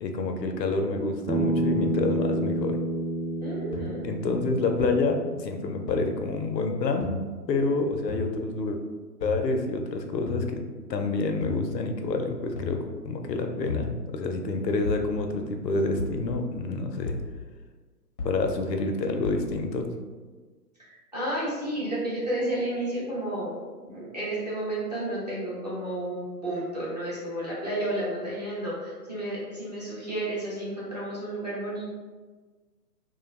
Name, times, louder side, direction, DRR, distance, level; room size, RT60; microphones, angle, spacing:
voice 1, 0.0-2.8 4.0-7.1 7.5-8.8 9.2-10.6 10.9-17.2 18.2-19.9, left 3 dB, 85° left, 5 dB, 0.6 m, -28 dB
Bass guitar, 1.3-5.6, right 2 dB, 70° right, 0.8 m, -29 dB
voice 2, 3.4-4.1 20.8-23.5 23.8-31.9, right 1 dB, 30° right, -8 dB, 0.4 m, -32 dB
sound 1, 3.7-3.8 4.8-4.9 5.9-6.0 7.0-7.2 8.1-8.3 9.2-9.4 10.3-10.5 11.4-11.6 12.6-12.8 13.7-13.9 14.8-15.1 16.0-16.2 17.1-17.3 18.2-18.4 19.2-19.5, left 4 dB, 30° left, 0.4 m, -33 dB
2.3 x 2.2 x 3.0 m, 1.4 s
figure-of-eight pair, 135°, 49 cm